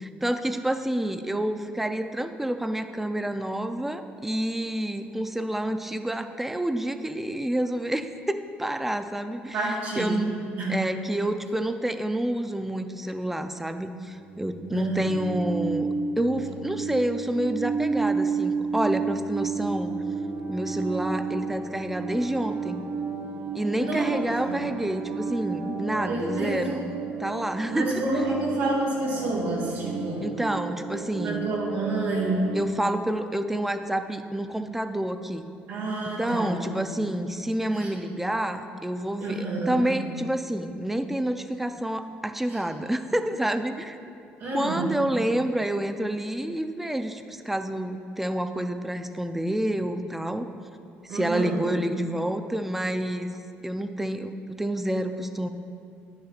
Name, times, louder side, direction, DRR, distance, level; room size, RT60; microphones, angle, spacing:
voice 1, 0.0-9.7 10.0-10.3 10.7-15.9 16.2-19.9 20.5-22.8 23.5-26.9 27.2-28.0 28.3-28.5 30.2-31.4 32.5-35.4 36.2-44.0 44.5-50.5 51.0-53.3 53.6-55.5, right 1 dB, 5° right, 8 dB, 0.4 m, -28 dB
voice 2, 9.5-10.3 10.6-10.9 14.7-15.2 23.8-24.5 25.6-25.7 26.1-26.7 27.7-30.3 31.2-32.6 35.7-37.0 37.7-37.9 39.2-39.9 42.5-42.6 44.4-44.9 51.1-51.6, right 2 dB, 80° right, -6 dB, 2.0 m, -29 dB
sound 1, 13.9-32.6, right 5 dB, 60° right, 0.7 m, -32 dB
10.0 x 9.4 x 2.4 m, 2.5 s
cardioid pair, 100°, 4 cm